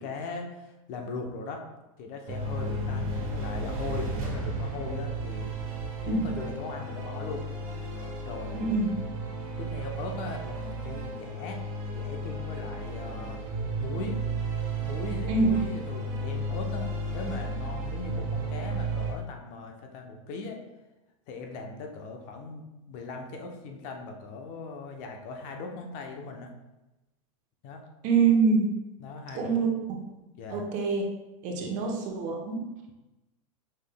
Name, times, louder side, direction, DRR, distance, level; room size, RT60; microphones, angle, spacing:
voice 1, 0.0-1.6 2.0-5.5 6.0-7.4 8.2-8.7 9.6-11.6 11.9-13.4 13.8-14.2 14.7-20.6 21.3-26.5 27.6-27.8 29.0-29.6 30.3-30.6 31.6-31.7, left 3 dB, 45° left, 2 dB, 0.7 m, -39 dB
sound 1, 2.3-19.1, right 2 dB, 75° right, 1.4 m, -33 dB
voice 2, 8.5-8.9 15.3-15.5 28.0-28.7 29.3-30.0 30.5-31.0 31.4-32.6, right 4 dB, 45° right, 1 dB, 0.9 m, -25 dB
5.4 x 3.6 x 2.2 m, 1.0 s
supercardioid pair, 130°, 18 cm